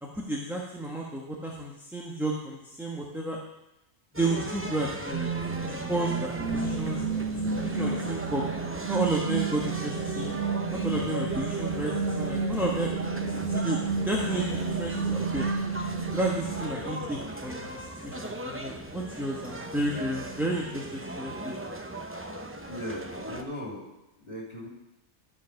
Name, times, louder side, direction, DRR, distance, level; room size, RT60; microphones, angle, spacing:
voice 1, 0.0-3.4 4.1-5.3 5.6-8.4 8.9-10.3 10.7-12.9 13.5-15.5 16.1-21.5, right 1 dB, ahead, -3 dB, 1.0 m, -32 dB
sound 1, 4.1-23.4, right 1 dB, 20° right, 0.4 m, -37 dB
sound 2, 5.1-17.1, right 5 dB, 70° right, 1.1 m, -31 dB
voice 2, 22.7-23.9 24.2-24.7, left 1 dB, 40° left, -4 dB, 3.5 m, -38 dB
12.0 x 4.8 x 6.4 m, 0.89 s
omnidirectional pair, 1.4 m